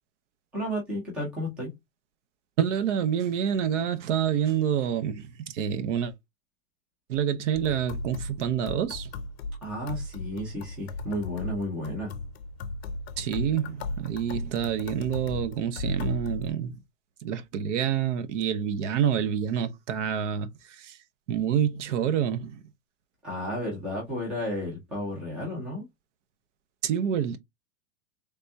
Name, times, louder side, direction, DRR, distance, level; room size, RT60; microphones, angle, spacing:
voice 1, 0.5-1.7 9.6-12.1 23.2-25.8, equal, 5° right, 0.4 m, -32 dB
voice 2, 2.6-6.1 7.1-9.1 13.2-16.8 17.2-21.0 21.3-22.6 26.8-27.4, right 9 dB, 60° right, 0.7 m, -27 dB
sound 1, 7.5-16.5, left 2 dB, 50° left, 0.6 m, -36 dB
3.4 x 2.6 x 3.3 m
supercardioid pair, 175°, 40 cm